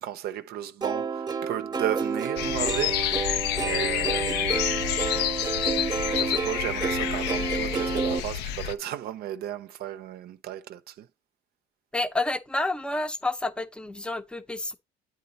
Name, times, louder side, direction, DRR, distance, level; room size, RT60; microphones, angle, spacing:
voice 1, 0.0-4.8 6.1-11.1, right 12 dB, 65° right, 0.6 m, -34 dB
Plucked string instrument, 0.8-8.2, right 5 dB, 25° right, 0.9 m, -30 dB
sound 1, 2.4-8.7, left 11 dB, 85° left, 0.5 m, -28 dB
voice 2, 11.9-14.8, left 2 dB, 5° left, 0.6 m, -29 dB
8.7 x 3.8 x 4.0 m
cardioid pair, 110°, 17 cm